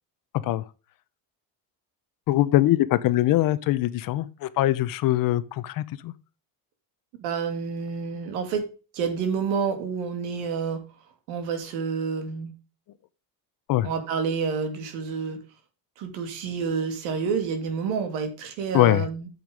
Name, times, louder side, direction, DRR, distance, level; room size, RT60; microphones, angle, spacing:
voice 1, 2.3-6.1 13.7-13.9 18.7-19.1, left 15 dB, 50° left, 0.8 m, -22 dB
voice 2, 7.2-8.6 8.9-10.8 11.3-12.5 13.8-15.4 16.0-19.3, right 6 dB, 85° right, 2.7 m, -29 dB
9.3 x 6.8 x 5.2 m
cardioid pair, 145°, 45 cm